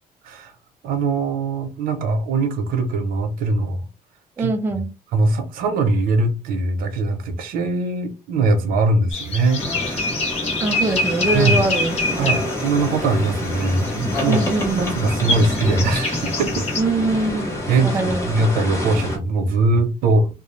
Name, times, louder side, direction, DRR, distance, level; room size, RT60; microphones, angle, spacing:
voice 1, 0.8-3.8 4.4-4.5 5.1-10.3 11.3-11.6 12.2-16.7 17.7-20.3, right 3 dB, 85° right, 0.6 m, -21 dB
voice 2, 4.4-4.9 10.6-12.5 14.2-15.0 16.8-17.6 17.8-18.3, right 2 dB, 15° right, 0.3 m, -23 dB
sound 1, 9.1-16.8, left 2 dB, 45° left, 1.2 m, -26 dB
sound 2, 9.6-19.2, left 1 dB, 20° left, 1.0 m, -27 dB
2.3 x 2.1 x 3.1 m
cardioid pair, 160°, 15 cm